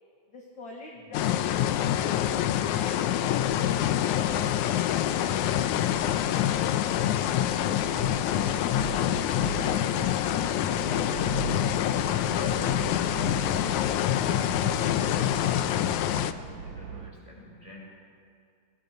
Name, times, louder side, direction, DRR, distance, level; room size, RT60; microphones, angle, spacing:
voice 1, 0.3-2.4 2.7-6.5 6.9-8.9 9.6-11.5, left 3 dB, 40° left, 0 dB, 2.3 m, -45 dB
sound 1, 1.1-16.3, left 11 dB, 80° left, 2.1 m, -26 dB
sound 2, 1.2-17.1, right 7 dB, 70° right, 2.4 m, -41 dB
voice 2, 11.8-17.9, equal, 10° left, -2 dB, 6.1 m, -46 dB
29.0 x 24.0 x 5.2 m, 2.4 s
omnidirectional pair, 3.6 m